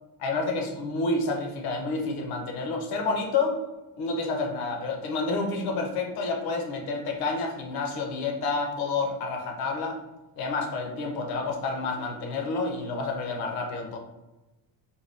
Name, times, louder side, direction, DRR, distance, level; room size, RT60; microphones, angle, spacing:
voice 1, 0.2-3.6 4.0-10.0 10.4-14.0, left 3 dB, 60° left, 3 dB, 0.6 m, -29 dB
2.6 x 2.1 x 3.3 m, 1.0 s
cardioid pair, 150°, 42 cm